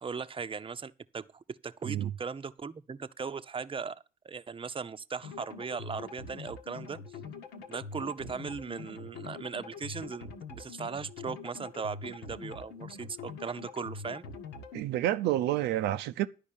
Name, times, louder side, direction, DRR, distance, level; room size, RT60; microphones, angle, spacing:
voice 1, 0.0-7.2 7.7-14.2, right 5 dB, 30° right, 0.7 m, -38 dB
sound 1, 5.2-14.8, left 4 dB, 75° left, 1.3 m, -44 dB
voice 2, 14.7-16.3, right 13 dB, 75° right, 0.5 m, -29 dB
11.0 x 5.2 x 8.6 m
hypercardioid pair, 45°, 18 cm